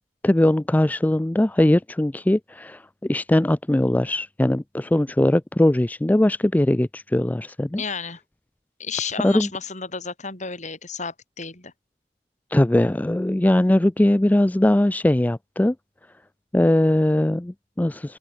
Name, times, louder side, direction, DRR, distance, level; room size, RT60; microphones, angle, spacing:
voice 1, 0.2-7.8 9.2-9.5 12.5-15.7 16.5-18.2, left 1 dB, 10° left, 0.4 m, -20 dB
voice 2, 7.7-8.2 8.8-11.7, left 5 dB, 40° left, 5.5 m, -32 dB
open air
head